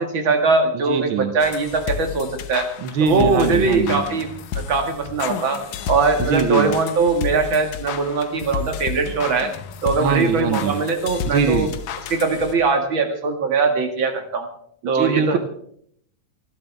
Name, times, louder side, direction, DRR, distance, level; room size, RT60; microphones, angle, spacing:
voice 1, 0.0-2.7 3.0-4.3 4.7-5.6 5.9-9.5 9.8-11.7 12.1-14.5 14.9-15.4, right 4 dB, 45° right, 4 dB, 2.6 m, -21 dB
voice 2, 0.7-1.3 2.8-4.0 6.2-6.7 10.0-10.8 11.3-11.7 14.8-15.4, right 7 dB, 65° right, 8 dB, 1.3 m, -22 dB
sound 1, 1.4-12.8, left 7 dB, 75° left, 2.3 m, -31 dB
28.0 x 12.0 x 3.5 m, 0.66 s
omnidirectional pair, 3.3 m